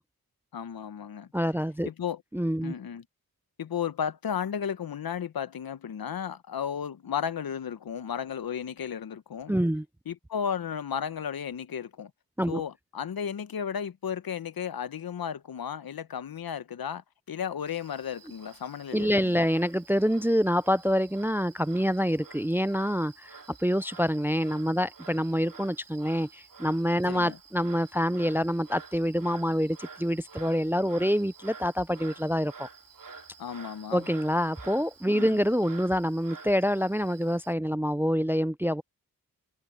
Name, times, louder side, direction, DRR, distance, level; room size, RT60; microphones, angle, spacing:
voice 1, 0.5-1.6 1.8-2.2 2.6-3.0 3.6-9.6 10.0-12.1 12.5-19.5 27.0-27.4 33.4-34.1 35.1-35.5, left 8 dB, 70° left, 1.0 m, -34 dB
voice 2, 1.3-1.9 2.3-2.7 9.5-9.8 12.4-12.6 18.9-32.7 33.9-38.8, equal, 5° right, 0.4 m, -26 dB
Frog, 17.7-37.5, right 5 dB, 60° right, 2.4 m, -50 dB
cardioid pair, 45°, 37 cm